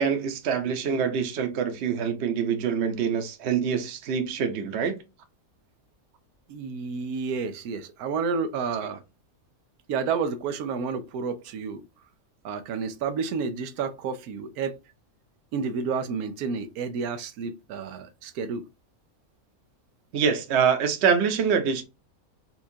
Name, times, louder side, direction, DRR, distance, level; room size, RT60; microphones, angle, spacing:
voice 1, 0.0-5.0 20.1-21.8, right 6 dB, 55° right, 0.9 m, -25 dB
voice 2, 6.5-9.0 9.9-11.8 12.4-14.8 15.5-18.6, right 5 dB, 90° right, 1.1 m, -30 dB
4.4 x 2.4 x 2.7 m
omnidirectional pair, 1.5 m